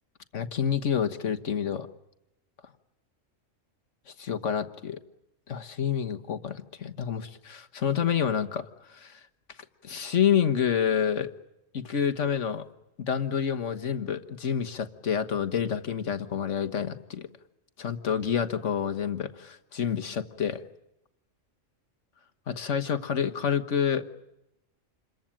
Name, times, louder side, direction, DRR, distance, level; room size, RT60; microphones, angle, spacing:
voice 1, 0.3-1.9 4.2-5.0 5.5-8.6 8.9-9.2 9.8-11.3 11.7-12.7 13.0-17.3 17.8-20.6 22.5-24.1, left 8 dB, 70° left, 8 dB, 1.7 m, -28 dB
28.5 x 22.5 x 9.0 m, 0.88 s
omnidirectional pair, 1.3 m